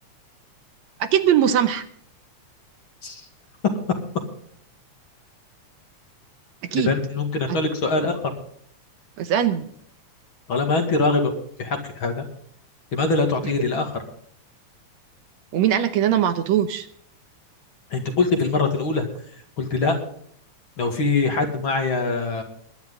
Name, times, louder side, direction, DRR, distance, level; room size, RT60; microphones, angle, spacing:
voice 1, 1.0-1.8 6.6-6.9 9.2-9.7 15.5-16.9, right 10 dB, 70° right, 9 dB, 2.1 m, -20 dB
voice 2, 6.7-8.1 10.5-11.3 11.6-12.2 12.9-13.9 17.9-19.1 19.6-20.0 20.8-22.4, left 3 dB, 45° left, 4 dB, 2.6 m, -23 dB
21.5 x 10.5 x 3.8 m, 0.62 s
omnidirectional pair, 3.3 m